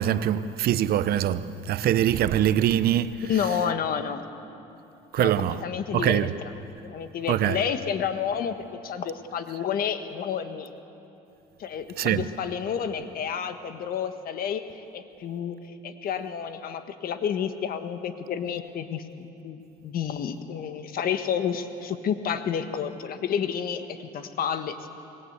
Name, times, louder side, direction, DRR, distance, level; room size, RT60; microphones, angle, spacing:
voice 1, 0.0-3.3 5.1-5.6 5.9-6.3 7.3-7.6 12.0-12.2, right 11 dB, 65° right, 0.8 m, -23 dB
voice 2, 3.3-4.2 5.2-6.2 6.8-8.5 8.8-10.7 11.6-14.7 14.9-15.6 15.8-24.9, left 8 dB, 60° left, 1.5 m, -30 dB
25.0 x 20.5 x 8.1 m
cardioid pair, 110°, 17 cm